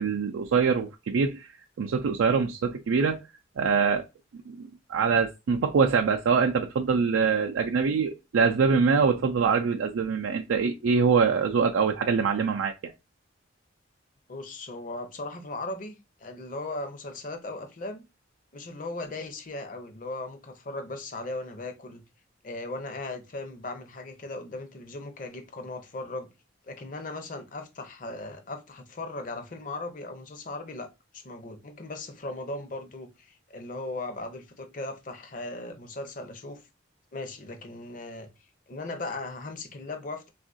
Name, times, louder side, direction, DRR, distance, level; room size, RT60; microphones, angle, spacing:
voice 1, 0.0-1.5 1.8-3.2 3.6-4.0 4.5-12.9, right 5 dB, 90° right, 0.4 m, -24 dB
voice 2, 14.3-18.1 18.5-22.0 22.4-26.3 26.6-36.6 37.1-38.3 38.7-40.3, left 2 dB, 45° left, 0.6 m, -38 dB
3.6 x 2.4 x 2.4 m
head